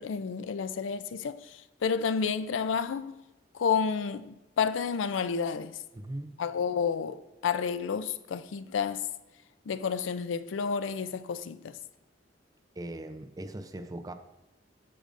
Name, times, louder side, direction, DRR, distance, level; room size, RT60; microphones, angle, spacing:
voice 1, 0.0-3.2 3.5-5.8 6.4-9.1 9.7-11.7, left 6 dB, 85° left, 0.4 m, -30 dB
voice 2, 5.9-6.3 12.8-14.1, right 1 dB, 20° right, 0.5 m, -39 dB
10.0 x 6.5 x 2.5 m
head